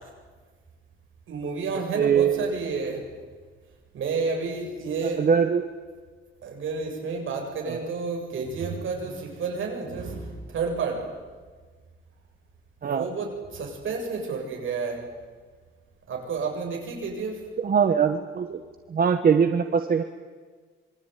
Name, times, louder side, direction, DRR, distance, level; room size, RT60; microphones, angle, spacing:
voice 1, 1.3-3.1 3.9-5.2 6.4-11.1 12.8-15.1 16.1-17.5, right 4 dB, 70° right, 2 dB, 7.4 m, -30 dB
voice 2, 1.9-2.6 5.2-5.6 7.7-7.8 12.8-13.0 17.6-18.6 18.9-20.0, right 6 dB, 45° right, 8 dB, 1.4 m, -22 dB
26.5 x 23.5 x 9.5 m, 1.4 s
wide cardioid pair, 165°, 21 cm